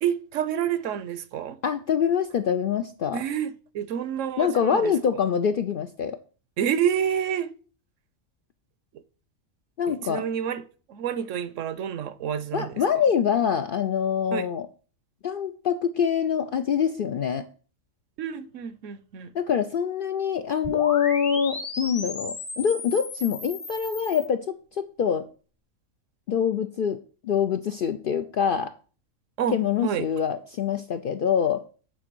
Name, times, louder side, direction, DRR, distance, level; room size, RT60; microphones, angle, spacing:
voice 1, 0.0-1.6 3.1-4.9 6.6-7.5 9.9-10.6 10.9-12.7 14.3-14.5 18.2-19.3 29.4-30.1, right 9 dB, 75° right, 1.0 m, -28 dB
voice 2, 1.6-3.2 4.4-6.2 9.8-10.2 12.5-14.7 15.2-17.5 19.3-25.3 26.3-27.0 27.2-28.7 29.5-31.6, left 7 dB, 65° left, 0.5 m, -25 dB
sound 1, 20.6-24.2, left 3 dB, 30° left, 0.9 m, -35 dB
8.5 x 3.7 x 6.1 m
omnidirectional pair, 1.4 m